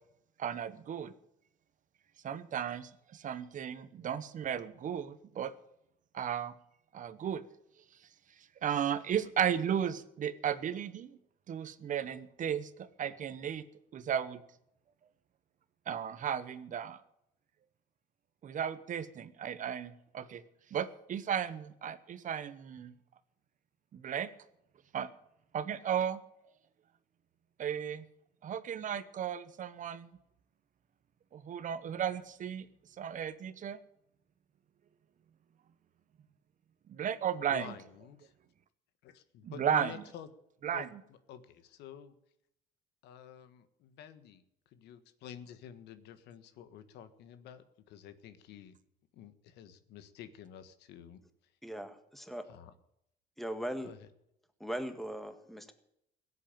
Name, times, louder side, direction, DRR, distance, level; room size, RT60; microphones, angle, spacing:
voice 1, 0.4-1.1 2.2-5.5 6.1-6.5 6.9-7.4 8.6-11.1 11.5-13.6 13.9-14.4 15.9-17.0 18.4-20.4 20.7-22.9 23.9-24.3 24.9-25.1 25.5-26.2 27.6-28.1 28.4-30.1 31.3-32.7 33.0-33.8 36.9-37.7 39.4-39.9 40.6-40.9, right 8 dB, 50° right, 13 dB, 1.1 m, -35 dB
voice 2, 37.5-38.3 39.0-40.3 40.7-42.1 43.0-48.8 49.1-51.5 52.5-52.7 53.8-54.1, left 9 dB, 85° left, 12 dB, 1.5 m, -50 dB
voice 3, 51.6-52.4 53.4-53.9 54.6-55.7, equal, ahead, 8 dB, 1.8 m, -39 dB
16.5 x 8.3 x 9.0 m, 0.78 s
cardioid pair, 110°, 17 cm